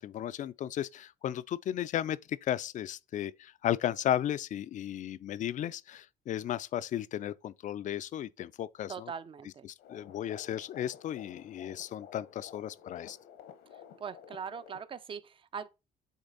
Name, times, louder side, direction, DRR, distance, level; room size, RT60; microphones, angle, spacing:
voice 1, 0.0-9.1 9.6-13.2, left 11 dB, 50° left, 0.4 m, -35 dB
voice 2, 8.9-9.7 14.0-15.7, right 6 dB, 30° right, 0.5 m, -41 dB
sound 1, 9.8-14.8, left 8 dB, 75° left, 1.0 m, -52 dB
8.1 x 3.3 x 3.9 m
cardioid pair, 110°, 17 cm